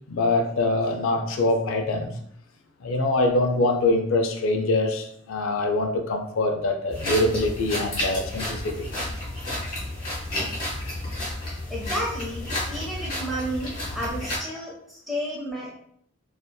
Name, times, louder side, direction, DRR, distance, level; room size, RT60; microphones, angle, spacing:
voice 1, 0.1-2.1 2.8-8.9, left 2 dB, 70° left, 4 dB, 0.4 m, -24 dB
sound 1, 6.9-14.4, left 1 dB, 40° left, 1.1 m, -31 dB
voice 2, 11.7-15.7, equal, ahead, -5 dB, 0.6 m, -32 dB
2.6 x 2.4 x 2.2 m, 0.65 s
head